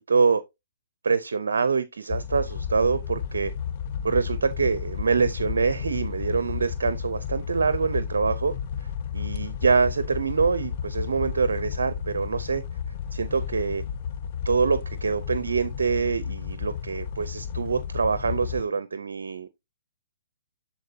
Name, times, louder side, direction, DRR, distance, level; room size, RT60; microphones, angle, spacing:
voice 1, 0.1-0.4 1.0-3.5 4.0-8.5 9.1-12.6 13.1-13.8 14.5-19.5, right 5 dB, 75° right, 0.6 m, -25 dB
sound 1, 2.1-18.6, left 7 dB, 45° left, 0.8 m, -32 dB
12.0 x 4.2 x 2.8 m
hypercardioid pair, 135°, 0 cm